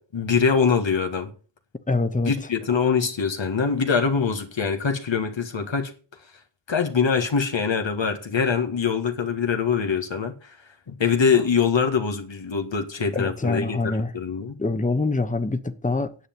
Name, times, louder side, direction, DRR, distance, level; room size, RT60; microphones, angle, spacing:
voice 1, 0.0-1.3 2.3-5.9 6.7-10.6 10.9-14.6, left 6 dB, 85° left, 1.7 m, -23 dB
voice 2, 1.9-2.3 13.1-14.1 14.6-16.1, left 3 dB, 15° left, 1.1 m, -25 dB
9.8 x 8.0 x 7.2 m
wide cardioid pair, 60°, 44 cm